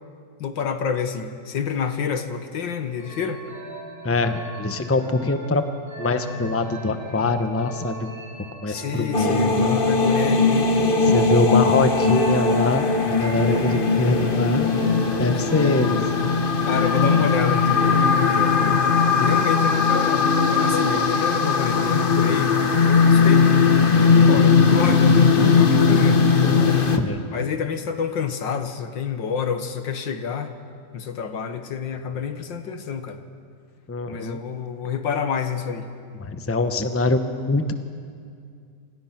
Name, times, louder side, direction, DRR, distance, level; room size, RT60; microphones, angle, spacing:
voice 1, 0.4-3.4 8.7-10.7 15.5-15.6 16.7-18.6 19.2-26.2 27.3-30.5 30.9-33.2 34.1-35.9, left 6 dB, 85° left, 8 dB, 2.1 m, -28 dB
sound 1, 3.0-19.4, equal, 75° right, 5.8 m, -39 dB
voice 2, 4.0-5.6 6.0-8.1 8.6-9.8 11.0-14.7 15.2-16.2 27.0-27.2 33.9-34.4 36.1-37.7, left 3 dB, 10° left, 8 dB, 0.8 m, -23 dB
sound 2, 9.1-27.0, left 5 dB, 35° left, 1.3 m, -19 dB
28.0 x 26.0 x 6.0 m, 2.3 s
omnidirectional pair, 2.0 m